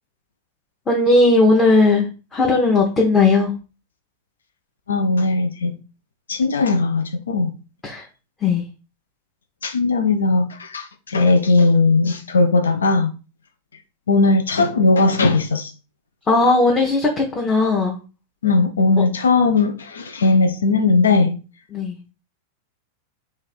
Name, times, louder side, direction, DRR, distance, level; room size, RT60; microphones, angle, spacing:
voice 1, 0.9-3.5 7.8-8.0 8.4-8.6 16.3-18.0 21.7-22.0, left 3 dB, 20° left, 0.8 m, -17 dB
voice 2, 4.9-5.8 6.3-7.5 9.6-13.1 14.1-15.7 18.4-21.4, left 3 dB, 70° left, 0.4 m, -18 dB
3.1 x 2.4 x 4.2 m
figure-of-eight pair, 90°, 0 cm